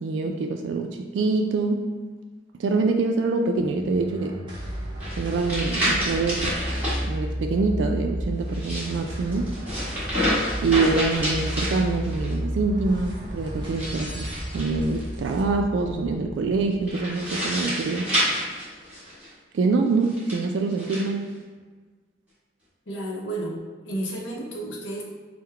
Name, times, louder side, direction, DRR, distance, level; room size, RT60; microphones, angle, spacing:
voice 1, 0.0-1.9 2.6-4.4 5.2-6.5 7.0-9.5 10.6-18.1 19.5-21.3, right 3 dB, 75° right, 3 dB, 0.3 m, -25 dB
sound 1, 3.6-18.2, equal, 25° right, 0.7 m, -33 dB
sound 2, 5.0-7.0 8.4-12.3 13.7-15.0 16.9-19.3 20.0-21.0, equal, 10° right, 1.3 m, -28 dB
sound 3, 13.7-15.1, equal, 25° left, 1.1 m, -42 dB
voice 2, 22.9-25.0, right 1 dB, 80° left, -1 dB, 0.7 m, -32 dB
3.8 x 2.1 x 4.2 m, 1.4 s
head